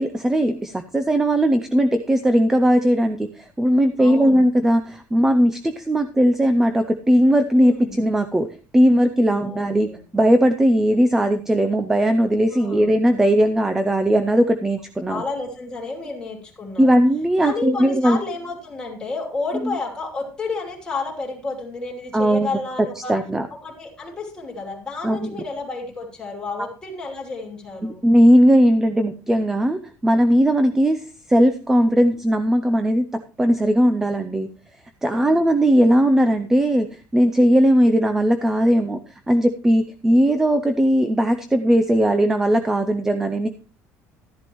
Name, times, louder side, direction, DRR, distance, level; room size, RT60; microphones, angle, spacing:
voice 1, 0.0-8.5 8.7-9.9 10.1-15.2 16.8-18.2 22.1-22.6 23.1-23.5 25.0-25.4 27.8-33.0 33.4-34.5 35.0-39.0 39.3-43.5, equal, 5° right, 9 dB, 0.5 m, -18 dB
voice 2, 4.0-4.4 7.5-8.0 9.3-10.0 12.5-12.9 15.1-17.0 17.4-23.2 23.6-28.0 35.1-35.4, left 3 dB, 15° left, -1 dB, 2.9 m, -31 dB
13.5 x 11.0 x 3.1 m, 0.38 s
cardioid pair, 175°, 6 cm